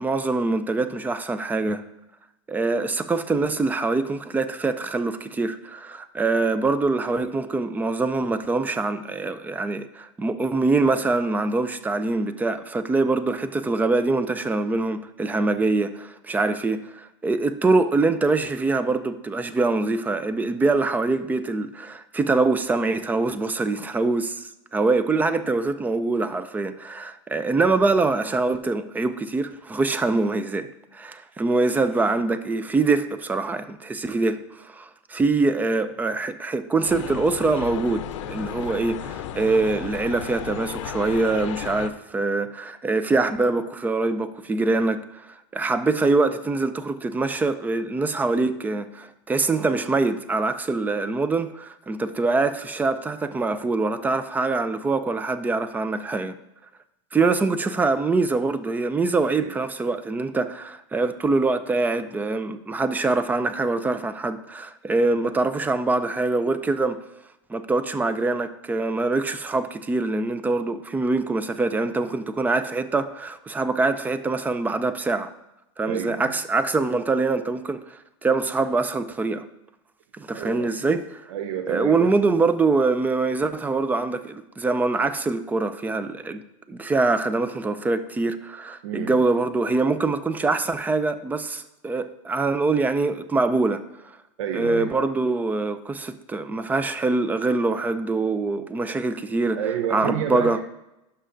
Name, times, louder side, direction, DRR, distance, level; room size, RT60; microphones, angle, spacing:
voice 1, 0.0-1.8 2.5-56.3 57.1-67.0 67.5-75.3 75.8-79.5 80.1-81.3 81.7-86.4 86.7-93.9 94.5-99.6 99.9-100.6, right 3 dB, 10° right, 0.3 m, -24 dB
sound 1, 36.9-41.9, left 10 dB, 75° left, 0.6 m, -34 dB
voice 2, 75.9-76.3 80.3-80.7 81.3-82.1 88.8-89.2 94.4-95.1 99.6-100.6, right 9 dB, 80° right, 0.6 m, -30 dB
11.0 x 5.7 x 2.6 m
supercardioid pair, 125°, 16 cm